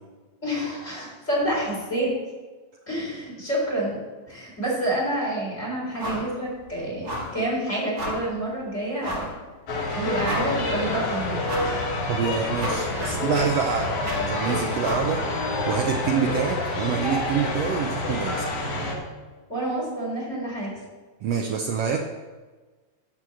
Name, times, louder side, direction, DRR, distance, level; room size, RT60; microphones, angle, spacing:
voice 1, 0.4-2.1 2.9-4.0 4.3-9.4 9.9-11.4 19.5-20.7, right 1 dB, 20° left, -4 dB, 4.1 m, -28 dB
sound 1, 6.0-6.3 6.6-6.7 7.0-7.4 8.0-8.3 9.0-9.4 9.8-9.9 10.2-10.7 11.4-11.8 12.2-15.1, equal, 35° right, 1.8 m, -33 dB
sound 2, 9.7-18.9, left 2 dB, 50° left, 2.3 m, -28 dB
voice 2, 12.1-15.2 15.7-18.5 21.2-22.0, right 7 dB, 85° right, 3 dB, 1.4 m, -26 dB
11.5 x 4.6 x 7.7 m, 1.3 s
omnidirectional pair, 3.8 m